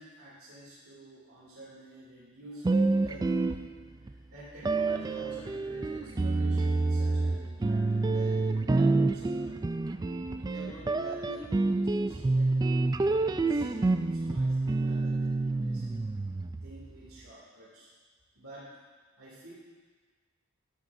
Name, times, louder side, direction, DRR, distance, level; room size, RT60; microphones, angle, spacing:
voice 1, 0.0-3.7 4.0-9.8 10.3-12.6 13.0-16.0 16.6-17.9 18.3-18.7 19.2-19.5, right 1 dB, 80° right, -9 dB, 2.7 m, -49 dB
sound 1, 2.6-4.1 4.6-16.9, right 3 dB, 20° right, 0.3 m, -28 dB
14.0 x 11.0 x 2.6 m, 1.4 s
head